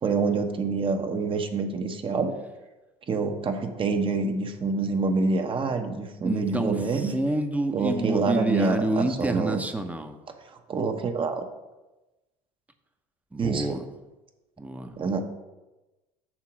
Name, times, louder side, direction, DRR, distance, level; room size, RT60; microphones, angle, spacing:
voice 1, 0.0-2.3 3.1-7.1 7.7-9.6 10.5-11.4 13.4-13.8 15.0-15.3, right 4 dB, 35° right, 5 dB, 1.0 m, -26 dB
voice 2, 6.2-10.2 13.3-13.8 14.6-15.0, right 2 dB, 10° right, 7 dB, 0.8 m, -28 dB
7.5 x 3.7 x 6.1 m, 1.1 s
hypercardioid pair, 75°, 16 cm